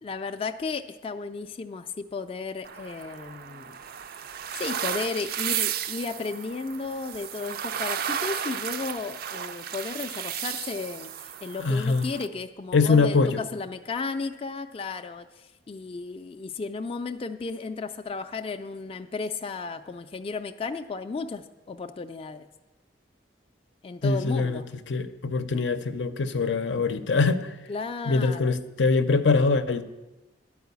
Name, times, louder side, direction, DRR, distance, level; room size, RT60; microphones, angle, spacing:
voice 1, 0.0-3.8 4.6-22.5 23.8-24.7 27.7-28.5, left 4 dB, 30° left, 0.3 m, -34 dB
sound 1, 2.6-12.3, right 9 dB, 55° right, 0.4 m, -34 dB
voice 2, 11.6-12.0 12.7-13.4 24.0-24.6 24.9-27.5 28.1-29.8, left 4 dB, 85° left, 0.6 m, -23 dB
11.0 x 4.8 x 8.2 m
head